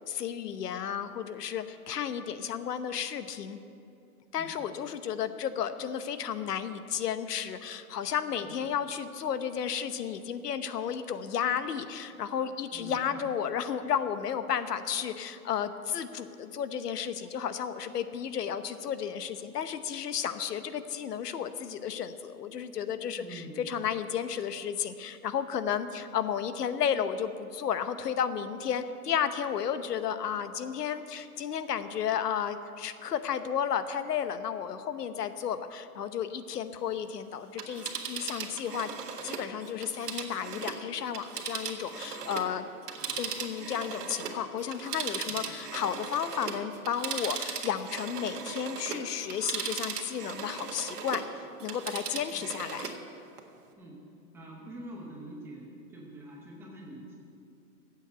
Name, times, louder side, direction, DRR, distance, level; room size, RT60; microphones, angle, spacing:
voice 1, 0.1-3.6 4.3-38.9 39.2-42.7 43.2-52.9, left 8 dB, 85° left, 11 dB, 1.0 m, -33 dB
voice 2, 12.7-13.2 23.2-23.6 43.0-43.3 45.3-45.4 52.3-52.5 53.8-54.0 54.3-57.2, right 1 dB, 5° right, -3 dB, 0.8 m, -46 dB
Telephone, 37.4-42.5 42.8-51.3 51.6-53.0 53.4-53.5, right 6 dB, 80° right, 1.8 m, -38 dB
14.0 x 8.2 x 8.0 m, 2.5 s
hypercardioid pair, 165°, 46 cm